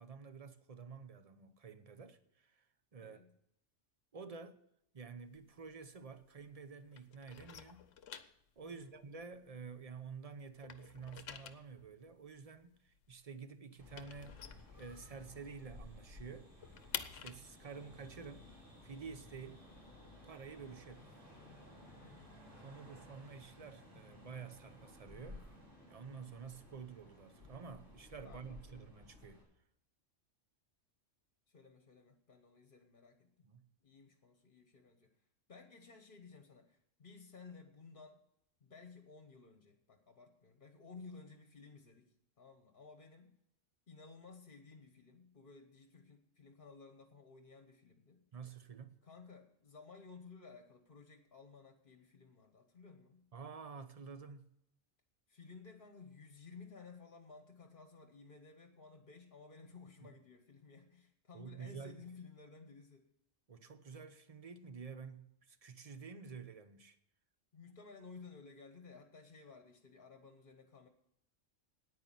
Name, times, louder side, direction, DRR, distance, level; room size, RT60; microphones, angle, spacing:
voice 1, 0.0-2.6 2.9-3.2 4.1-4.6 4.9-7.9 8.6-14.4 14.7-16.5 17.1-18.4 18.8-19.6 20.2-21.1 22.6-25.5 25.9-29.4 33.4-33.7 48.3-49.0 53.3-54.5 60.0-60.1 61.3-62.0 63.5-67.0, right 5 dB, 35° right, 0.8 m, -50 dB
voice 2, 3.0-3.3 8.7-9.0 22.0-22.4 28.2-28.9 31.5-33.3 33.8-35.1 35.5-38.2 38.6-43.3 43.9-48.2 49.0-53.3 55.3-63.1 67.5-70.9, left 4 dB, 45° left, 1.2 m, -56 dB
sound 1, 5.2-6.6 6.9-10.1 10.4-15.4 15.8-15.9 16.2-19.9, left 8 dB, 80° left, 1.1 m, -50 dB
sound 2, 13.8-29.4, left 1 dB, 60° right, 4.6 m, -57 dB
9.6 x 9.5 x 7.5 m
omnidirectional pair, 1.3 m